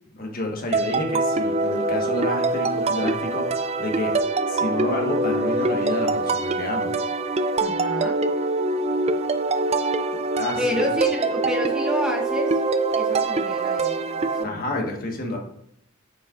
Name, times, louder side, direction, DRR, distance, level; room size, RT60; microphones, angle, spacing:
voice 1, 0.2-3.5 3.8-4.2 4.5-6.9 10.4-10.6 14.4-15.4, left 1 dB, 45° left, 1 dB, 1.4 m, -29 dB
ask silver, 0.7-14.4, right 3 dB, 30° right, 0.4 m, -24 dB
voice 2, 7.6-8.2 10.6-12.6 12.9-14.6, left 1 dB, 5° right, 0 dB, 0.9 m, -29 dB
8.6 x 7.1 x 2.5 m, 0.72 s
head